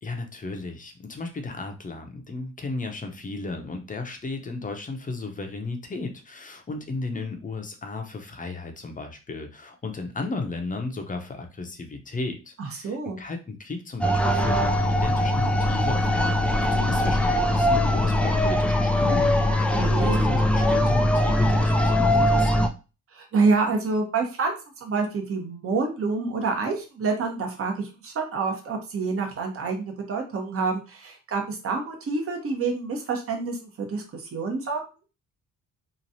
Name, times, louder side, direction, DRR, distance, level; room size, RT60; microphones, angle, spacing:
voice 1, 0.0-22.7, left 3 dB, 25° left, 4 dB, 0.7 m, -34 dB
voice 2, 12.6-13.2 19.7-20.2 23.2-34.8, right 4 dB, 45° right, 2 dB, 1.0 m, -27 dB
sound 1, 14.0-22.7, left 1 dB, 5° left, 0.3 m, -21 dB
3.1 x 2.5 x 2.7 m, 0.32 s
cardioid pair, 90°, 31 cm